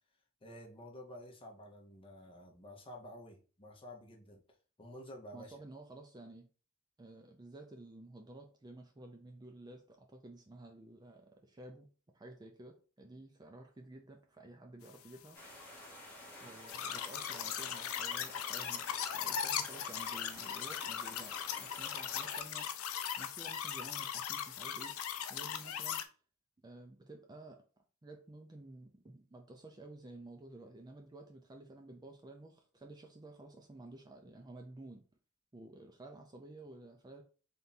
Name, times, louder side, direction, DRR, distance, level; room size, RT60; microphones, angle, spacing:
voice 1, 0.4-4.4 4.8-5.6, left 1 dB, 25° left, 1 dB, 0.9 m, -51 dB
voice 2, 5.3-6.5 7.0-15.4 16.4-22.8 23.2-25.0 25.3-26.1 26.6-27.6 28.0-35.1 35.5-37.2, right 2 dB, 20° right, 3 dB, 0.4 m, -52 dB
sound 1, 15.3-22.4, equal, 10° left, 1.2 m, -52 dB
sound 2, 16.7-26.1, left 9 dB, 70° left, 0.5 m, -39 dB
3.5 x 2.7 x 4.1 m, 0.37 s
head